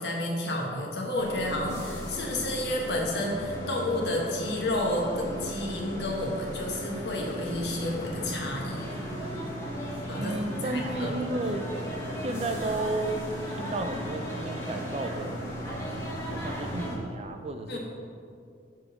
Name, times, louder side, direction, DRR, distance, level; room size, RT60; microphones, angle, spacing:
voice 1, 0.0-9.0 10.1-10.3 10.6-11.1 17.7-17.8, left 1 dB, 65° left, -1 dB, 1.5 m, -30 dB
sound 1, 1.2-17.0, equal, 15° left, 1.4 m, -36 dB
voice 2, 10.2-11.7 12.2-13.3 13.6-15.6 16.3-17.8, right 2 dB, 35° right, 6 dB, 0.5 m, -33 dB
9.0 x 3.8 x 6.1 m, 2.4 s
head